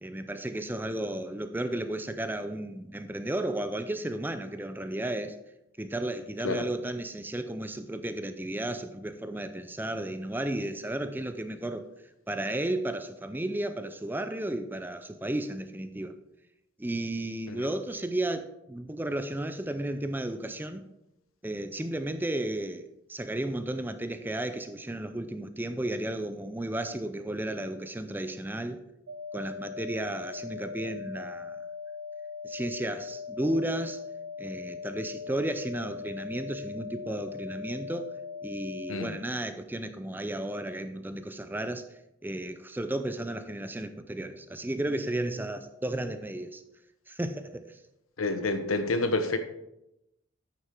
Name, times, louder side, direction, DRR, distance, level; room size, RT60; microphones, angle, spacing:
voice 1, 0.0-5.4 5.8-11.9 12.3-16.1 16.8-20.9 21.4-28.8 29.3-31.6 32.4-34.0 34.4-38.1 38.4-41.9 42.2-46.6 47.1-47.8, right 1 dB, 10° right, 0.5 m, -33 dB
sound 1, 29.1-39.1, left 5 dB, 90° right, 1.7 m, -40 dB
voice 2, 48.2-49.4, left 2 dB, 80° left, 1.0 m, -28 dB
9.0 x 6.8 x 4.5 m
head